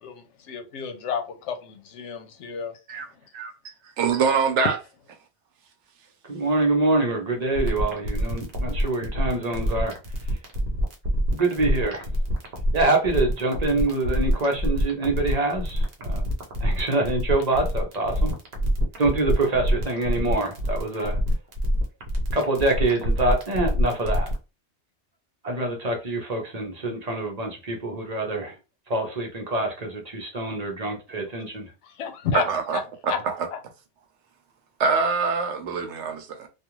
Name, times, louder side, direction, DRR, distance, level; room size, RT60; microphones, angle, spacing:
voice 1, 0.0-2.7 32.0-32.4 32.7-32.8 33.1-33.2 33.5-33.6, left 6 dB, 85° left, 0.9 m, -31 dB
voice 2, 4.0-4.8 32.3-33.5 34.8-36.5, right 5 dB, 80° right, 0.9 m, -24 dB
voice 3, 6.3-10.0 10.2-10.4 11.3-12.1 12.7-16.3 16.6-18.3 19.0-21.2 22.3-24.3 25.4-28.6 28.9-31.7, right 2 dB, 40° right, 0.7 m, -25 dB
sound 1, 7.5-24.4, equal, 65° right, 0.9 m, -25 dB
2.4 x 2.4 x 3.0 m
omnidirectional pair, 1.2 m